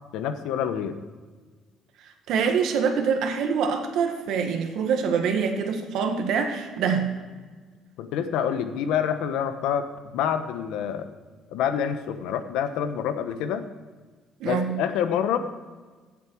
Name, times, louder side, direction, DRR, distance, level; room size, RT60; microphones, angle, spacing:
voice 1, 0.1-1.0 8.0-9.9 10.1-11.1 11.5-13.7 14.4-15.4, left 8 dB, 90° left, 9 dB, 1.0 m, -27 dB
voice 2, 2.0-7.1 14.4-14.7, right 6 dB, 65° right, 5 dB, 1.6 m, -25 dB
16.0 x 7.4 x 4.6 m, 1.4 s
cardioid pair, 160°, 0 cm